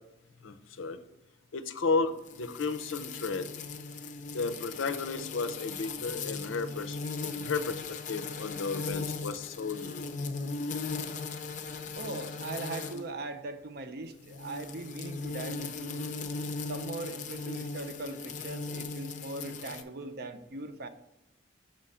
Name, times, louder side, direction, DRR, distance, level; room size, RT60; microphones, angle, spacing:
voice 1, 0.4-1.0 1.5-3.5 4.3-10.1, left 4 dB, 85° left, 10 dB, 0.5 m, -33 dB
sound 1, 2.3-13.1 14.2-19.8, left 4 dB, 40° left, 0.5 m, -38 dB
voice 2, 11.9-16.1 16.7-20.9, right 2 dB, 55° right, 9 dB, 0.6 m, -40 dB
6.3 x 3.7 x 5.4 m, 0.88 s
head